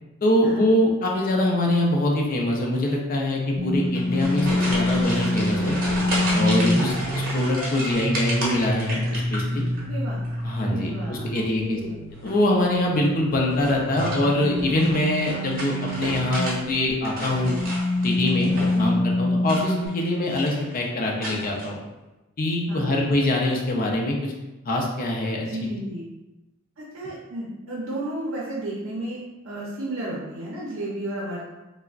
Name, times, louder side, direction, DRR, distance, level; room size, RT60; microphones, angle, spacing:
voice 1, 0.2-5.7 6.3-9.6 10.4-11.8 12.2-17.6 18.0-21.8 22.4-24.3 24.7-25.4, left 1 dB, 45° left, 0 dB, 0.5 m, -24 dB
sound 1, 3.6-16.6 17.2-19.9, left 1 dB, 10° right, 0.3 m, -27 dB
sound 2, 3.8-9.8 10.1-10.7 12.1-12.5 13.5-16.6 16.9-18.9 19.4-20.0 20.3-20.7 21.2-21.7, right 1 dB, 45° right, 0.8 m, -32 dB
voice 2, 6.5-7.0 9.8-10.2 10.6-12.0 18.7-19.0 22.7-23.2 25.4-26.1 26.8-31.5, right 1 dB, 75° right, -5 dB, 0.5 m, -33 dB
3.4 x 2.0 x 2.4 m, 1.1 s
head